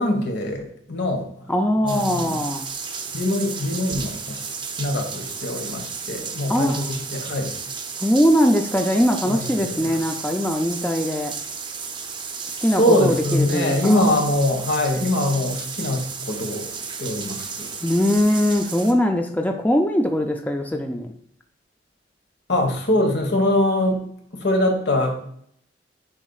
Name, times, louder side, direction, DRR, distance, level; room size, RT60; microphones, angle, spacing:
voice 1, 0.0-1.5 1.8-2.4 3.1-4.4 4.8-7.5 9.2-9.9 12.7-17.7 22.5-24.0 24.3-25.3, left 1 dB, 75° left, 2 dB, 1.4 m, -23 dB
voice 2, 1.5-2.7 6.5-6.9 8.0-11.3 12.5-14.0 17.8-21.1, equal, 10° left, 3 dB, 0.4 m, -21 dB
sound 1, 1.9-18.9, right 5 dB, 25° right, 0.7 m, -33 dB
9.9 x 4.1 x 2.4 m, 0.67 s
head